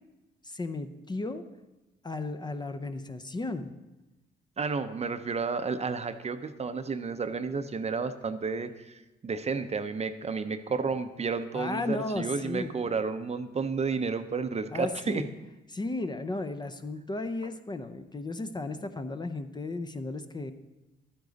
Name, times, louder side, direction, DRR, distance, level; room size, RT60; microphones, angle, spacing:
voice 1, 0.4-1.4 2.0-3.8 11.5-12.7 14.7-15.3 15.7-20.5, left 2 dB, 20° left, 8 dB, 0.6 m, -34 dB
voice 2, 4.6-15.2, right 5 dB, 30° right, 10 dB, 0.6 m, -31 dB
12.0 x 9.9 x 4.0 m, 1.0 s
cardioid pair, 90°, 20 cm